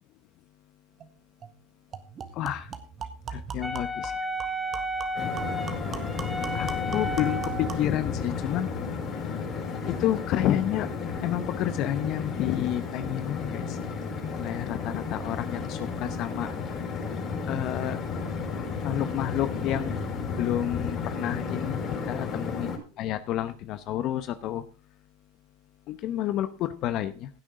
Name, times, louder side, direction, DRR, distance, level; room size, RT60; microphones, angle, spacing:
sound 1, 1.0-1.1 1.4-1.5 1.9-7.9, right 6 dB, 35° right, 1.7 m, -41 dB
voice 1, 2.4-2.7 3.3-4.1 6.5-8.7 9.8-10.9 11.2-13.8 14.4-16.5 17.5-18.0 18.8-20.0 20.4-21.8 22.1-22.7 23.0-24.6 25.9-27.3, left 12 dB, 50° left, 11 dB, 0.9 m, -30 dB
Wind instrument woodwind instrument, 3.6-7.8, equal, ahead, 2.4 m, -33 dB
sound 2, 5.2-22.8, left 5 dB, 35° left, 5.2 m, -33 dB
16.0 x 8.6 x 3.8 m, 0.32 s
hypercardioid pair, 100°, 0 cm